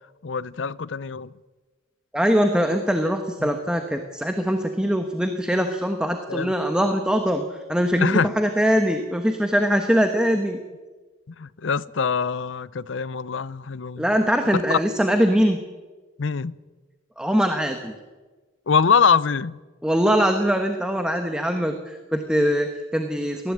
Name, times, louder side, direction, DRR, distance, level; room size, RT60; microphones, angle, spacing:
voice 1, 0.2-1.3 3.4-3.5 6.3-6.5 8.0-8.3 11.4-14.1 14.7-14.8 16.2-16.6 18.7-19.6, left 6 dB, 70° left, 0.6 m, -23 dB
voice 2, 2.1-10.6 14.0-15.6 17.2-18.0 19.8-23.5, equal, 5° right, 1.2 m, -22 dB
19.0 x 15.5 x 8.8 m
head